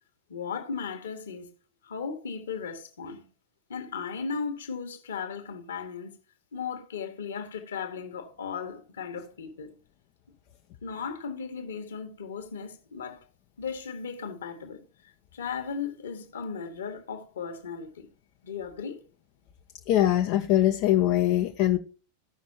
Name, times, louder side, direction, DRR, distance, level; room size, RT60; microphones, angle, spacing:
voice 1, 0.3-1.5 1.8-3.3 3.7-6.1 6.5-9.7 10.8-13.3 13.6-18.1 18.4-19.0, left 6 dB, 65° left, 1.6 m, -36 dB
voice 2, 19.9-21.8, left 13 dB, 45° left, 0.7 m, -22 dB
16.0 x 6.1 x 2.9 m
figure-of-eight pair, 90°, 0 cm